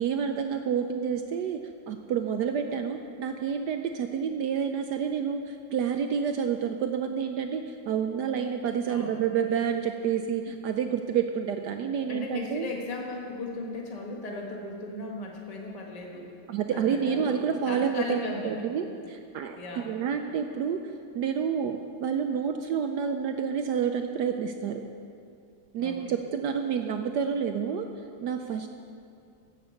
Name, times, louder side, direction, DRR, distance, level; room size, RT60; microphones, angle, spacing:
voice 1, 0.0-1.6 1.9-12.7 16.5-18.2 18.4-24.8 25.7-27.9 28.2-28.7, right 7 dB, 75° right, 6 dB, 0.9 m, -29 dB
voice 2, 8.9-9.2 12.1-16.3 16.7-18.9 19.6-19.9 25.8-26.0, left 2 dB, 20° left, -1 dB, 1.4 m, -36 dB
16.0 x 6.8 x 7.1 m, 2.5 s
omnidirectional pair, 2.4 m